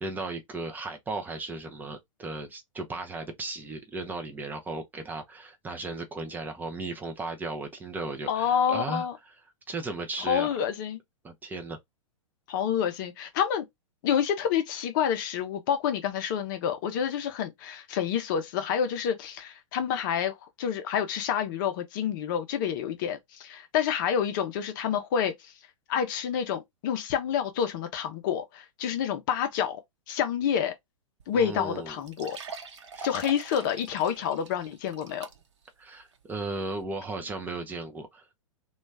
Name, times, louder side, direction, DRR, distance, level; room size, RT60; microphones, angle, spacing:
voice 1, 0.0-9.1 9.7-10.5 11.2-11.8 31.3-32.0 32.9-33.0 35.8-38.4, right 3 dB, 10° right, 0.6 m, -36 dB
voice 2, 8.3-9.2 10.2-11.0 12.5-13.6 14.0-25.5 25.9-29.8 30.1-30.7 31.3-32.4 33.0-35.3, left 8 dB, 40° left, 0.6 m, -28 dB
sound 1, 31.2-31.3 31.6-31.7 32.1-35.7 36.1-36.2 36.8-36.9, right 5 dB, 55° right, 0.8 m, -43 dB
3.0 x 2.3 x 3.3 m
figure-of-eight pair, 105°, 17 cm